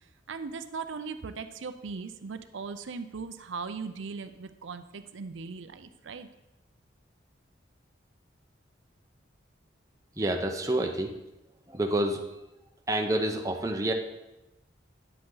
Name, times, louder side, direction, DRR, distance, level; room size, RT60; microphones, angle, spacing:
voice 1, 0.3-6.3, right 5 dB, 80° right, 9 dB, 0.5 m, -39 dB
voice 2, 10.2-11.1 11.7-12.2 12.9-13.9, right 1 dB, 15° right, 3 dB, 0.7 m, -28 dB
9.8 x 7.8 x 3.9 m, 0.97 s
head